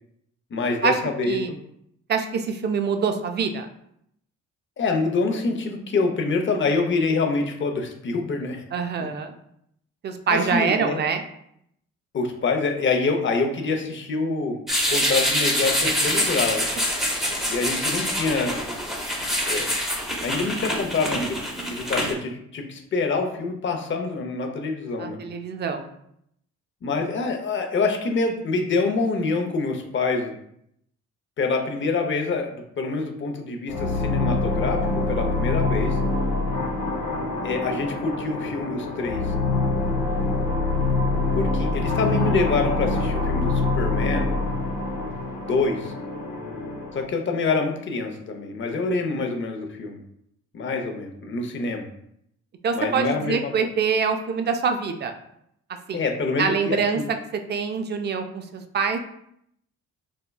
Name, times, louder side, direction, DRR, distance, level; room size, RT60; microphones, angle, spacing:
voice 1, 0.5-1.6 4.8-8.6 10.3-11.0 12.1-14.6 14.9-16.7 17.5-18.6 19.5-19.7 20.2-25.2 26.8-30.3 31.4-36.0 37.4-39.3 41.3-44.4 45.4-45.9 46.9-50.0 50.5-51.9 52.7-53.5 55.9-57.0, left 3 dB, 40° left, 4 dB, 0.6 m, -26 dB
voice 2, 2.1-3.7 8.7-9.3 10.0-11.2 15.8-15.9 25.0-25.9 52.6-55.1 55.9-56.0 56.4-57.0 57.5-59.0, right 5 dB, 35° right, 6 dB, 0.4 m, -25 dB
sound 1, 14.7-22.1, equal, ahead, 0.7 m, -25 dB
sound 2, 33.7-47.0, left 3 dB, 75° left, 0.7 m, -25 dB
4.3 x 2.2 x 2.2 m, 0.73 s
cardioid pair, 90°, 30 cm